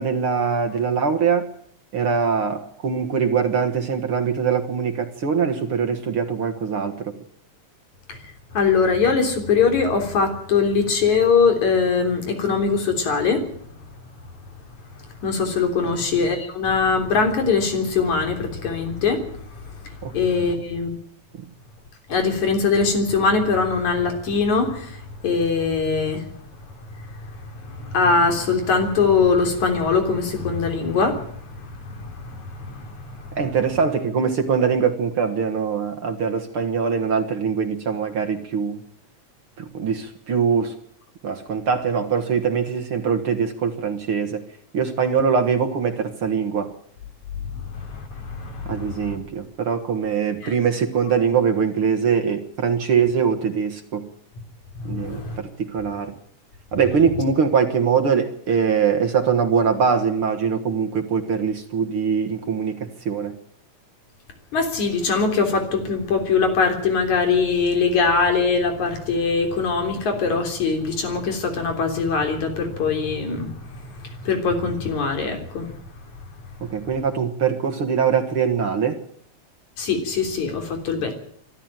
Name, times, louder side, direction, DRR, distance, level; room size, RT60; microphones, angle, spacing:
voice 1, 0.0-1.5 1.9-7.2 15.8-15.9 20.0-20.2 21.3-21.4 33.3-38.8 39.6-40.7 41.2-44.4 44.7-46.7 48.7-54.1 54.8-56.1 56.7-63.4 76.6-79.0, right 6 dB, 50° right, 7 dB, 2.1 m, -22 dB
voice 2, 8.1-13.5 15.0-21.0 22.1-26.4 26.9-33.4 47.5-49.2 50.4-50.5 54.8-55.4 64.5-75.8 79.8-81.1, left 5 dB, 75° left, 5 dB, 4.9 m, -22 dB
24.0 x 13.0 x 9.0 m, 0.65 s
omnidirectional pair, 3.3 m